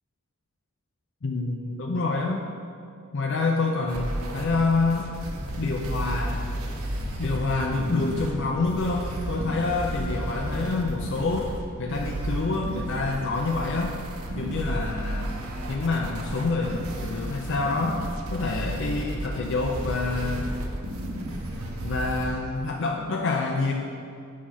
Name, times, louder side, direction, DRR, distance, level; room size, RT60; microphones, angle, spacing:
voice 1, 1.2-2.4 3.1-5.1 5.6-6.5 7.2-11.5 11.8-14.0 14.3-15.3 15.7-18.0 18.3-20.5 21.8-23.7, left 3 dB, 60° left, 0 dB, 0.6 m, -27 dB
sound 1, 3.9-22.3, right 1 dB, 90° right, 1.0 m, -33 dB
8.4 x 5.0 x 5.7 m, 2.5 s
head